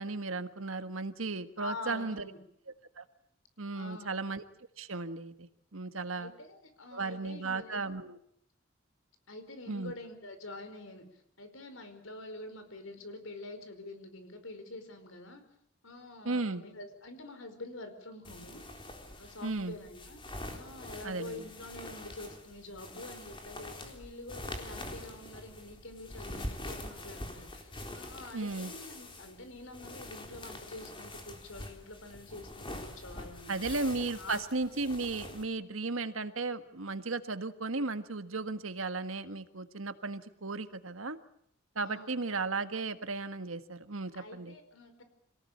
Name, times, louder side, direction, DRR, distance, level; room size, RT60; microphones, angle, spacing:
voice 1, 0.0-2.2 3.0-3.1 3.6-4.4 4.8-6.3 6.9-8.2 9.7-9.9 16.2-16.6 19.4-19.7 21.0-21.4 28.3-28.7 33.5-41.2 41.7-44.5, right 3 dB, 90° right, 10 dB, 1.7 m, -35 dB
voice 2, 1.6-2.4 3.7-4.1 6.1-8.0 9.3-11.0 11.4-15.4 15.8-18.6 19.2-20.2 20.5-33.7 34.2-34.8 41.8-42.4 44.1-45.0, left 2 dB, 80° left, 8 dB, 5.0 m, -46 dB
sound 1, 18.2-35.4, left 1 dB, 25° left, 4.0 m, -45 dB
26.5 x 18.5 x 8.7 m, 0.72 s
head